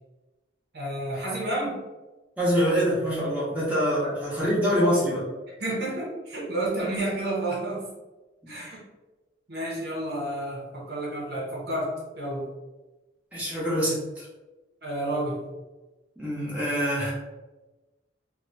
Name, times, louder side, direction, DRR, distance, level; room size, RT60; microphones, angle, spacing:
voice 1, 0.7-1.8 4.0-4.1 5.6-7.9 8.5-8.8 9.5-12.5 14.8-15.4, right 1 dB, 60° right, -4 dB, 0.9 m, -30 dB
voice 2, 2.4-5.3 8.4-8.6 13.3-14.3 16.2-17.1, equal, 10° right, -8 dB, 1.1 m, -25 dB
2.9 x 2.2 x 3.9 m, 1.1 s
head